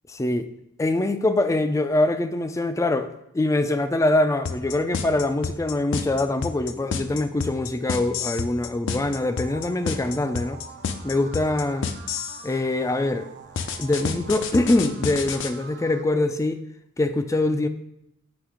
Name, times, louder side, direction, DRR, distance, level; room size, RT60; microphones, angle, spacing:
voice 1, 0.1-0.5 0.8-10.6 11.0-11.9 12.4-13.3 13.8-16.6 17.0-17.7, left 2 dB, 15° left, 0.3 m, -23 dB
sound 1, 4.5-12.5 13.6-15.5, left 5 dB, 65° left, 0.5 m, -29 dB
sound 2, 9.2-16.0, right 6 dB, 60° right, 0.5 m, -45 dB
8.0 x 3.4 x 4.9 m
head